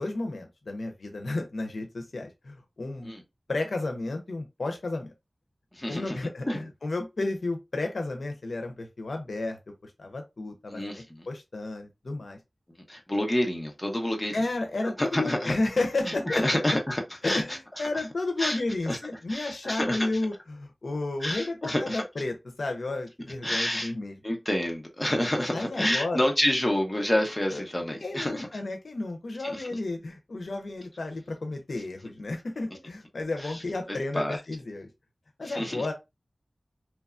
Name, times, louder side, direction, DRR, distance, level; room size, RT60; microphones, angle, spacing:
voice 1, 0.0-3.1 3.5-5.1 5.9-12.4 14.3-16.5 16.7-16.8 17.2-24.2 25.5-26.3 27.5-27.6 28.0-34.9 35.4-35.9, left 2 dB, 90° left, 0.5 m, -32 dB
voice 2, 5.7-6.2 6.5-6.7 10.7-11.2 12.9-14.3 15.0-15.5 16.0-17.4 18.4-18.6 18.9-19.0 19.3-20.1 21.2-22.0 23.4-23.9 24.2-28.5 29.4-29.7 33.4-33.5 33.9-34.4 35.4-35.8, left 1 dB, 20° left, 0.8 m, -28 dB
2.9 x 2.2 x 2.4 m
wide cardioid pair, 55°, 0 cm